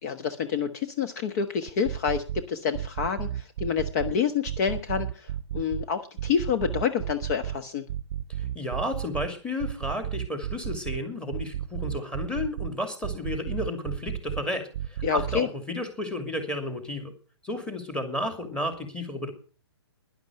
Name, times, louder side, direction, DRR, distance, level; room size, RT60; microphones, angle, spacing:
voice 1, 0.0-7.8 15.0-15.5, left 7 dB, 35° left, 8 dB, 1.2 m, -28 dB
sound 1, 1.7-2.4 2.7-4.1 4.5-5.8 6.2-7.6 7.9-9.3 9.6-11.0 11.3-12.7 13.0-14.4 14.7-15.4, right 11 dB, 40° right, 0.7 m, -32 dB
voice 2, 8.4-17.1 17.4-19.3, left 1 dB, 5° left, 7 dB, 2.7 m, -32 dB
12.0 x 11.0 x 6.5 m, 0.39 s
figure-of-eight pair, 135°, 15 cm